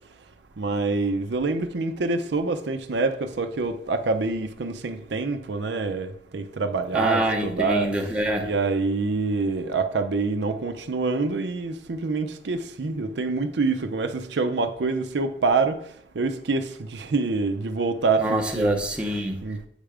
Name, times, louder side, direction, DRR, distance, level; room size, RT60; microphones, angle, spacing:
voice 1, 0.6-7.9 8.4-15.8 16.1-18.8 19.4-19.7, right 3 dB, 70° right, 0.5 m, -26 dB
voice 2, 6.9-8.5 18.2-19.4, right 1 dB, 5° right, 0.7 m, -25 dB
8.0 x 3.4 x 4.9 m
head